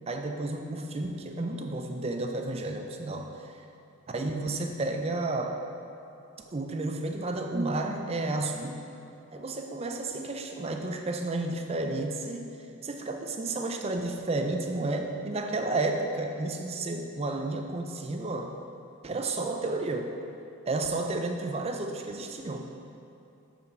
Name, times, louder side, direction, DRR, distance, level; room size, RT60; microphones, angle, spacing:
voice 1, 0.1-3.3 4.1-5.6 6.4-8.8 9.3-12.5 12.8-18.5 19.0-20.1 20.7-22.7, right 2 dB, 25° right, 4 dB, 0.4 m, -31 dB
8.7 x 4.2 x 4.1 m, 2.7 s
head